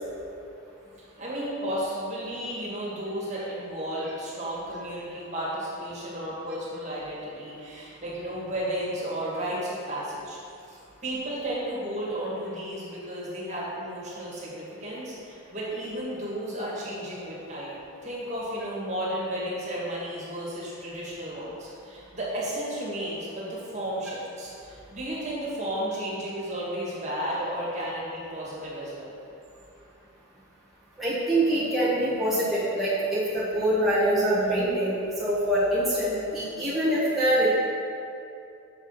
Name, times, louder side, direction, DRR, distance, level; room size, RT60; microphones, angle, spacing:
voice 1, 1.2-10.4 10.7-29.1, right 1 dB, 35° right, -7 dB, 1.9 m, -33 dB
voice 2, 31.0-37.5, right 1 dB, ahead, -12 dB, 1.5 m, -24 dB
7.0 x 4.8 x 5.7 m, 2.6 s
head